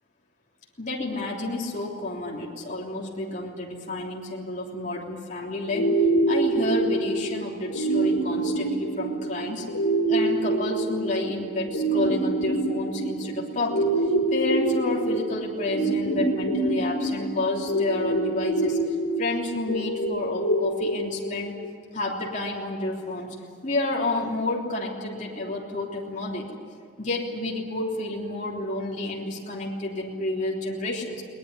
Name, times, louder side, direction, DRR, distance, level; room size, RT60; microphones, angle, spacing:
voice 1, 0.8-5.9 6.3-9.7 10.1-13.9 14.3-18.8 19.2-21.5 21.9-23.3 23.6-26.5 27.0-31.2, left 2 dB, 40° left, -3 dB, 3.3 m, -30 dB
sound 1, 5.7-21.7, right 2 dB, 70° left, 4.3 m, -26 dB
21.5 x 19.5 x 9.8 m, 2.2 s
head